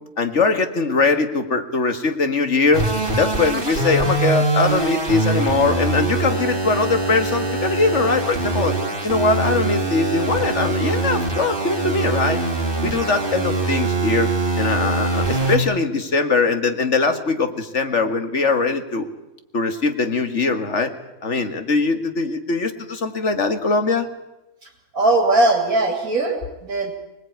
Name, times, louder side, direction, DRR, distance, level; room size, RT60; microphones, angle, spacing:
voice 1, 0.2-2.9 3.2-8.7 9.0-12.4 12.8-14.3 14.6-19.1 19.5-20.9 21.2-24.1, left 3 dB, 55° left, 8 dB, 2.2 m, -21 dB
sound 1, 2.7-15.6, right 2 dB, 35° right, 4.0 m, -23 dB
voice 2, 24.9-26.9, right 2 dB, 75° right, 1 dB, 3.0 m, -19 dB
25.5 x 19.5 x 9.4 m, 0.96 s
omnidirectional pair, 1.5 m